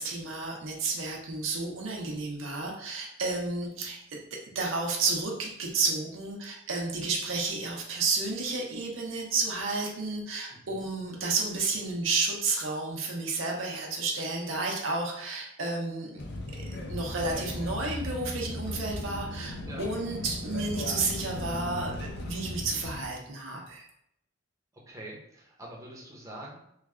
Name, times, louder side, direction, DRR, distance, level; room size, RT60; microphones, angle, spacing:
voice 1, 0.0-4.2 4.5-16.2 16.6-23.9, right 3 dB, 75° right, 0 dB, 0.7 m, -31 dB
voice 2, 10.5-10.9 19.6-19.9 24.9-26.6, right 1 dB, 15° right, -3 dB, 0.7 m, -44 dB
sound 1, 16.2-23.1, left 1 dB, 55° left, 0.6 m, -37 dB
3.2 x 2.3 x 3.6 m, 0.76 s
head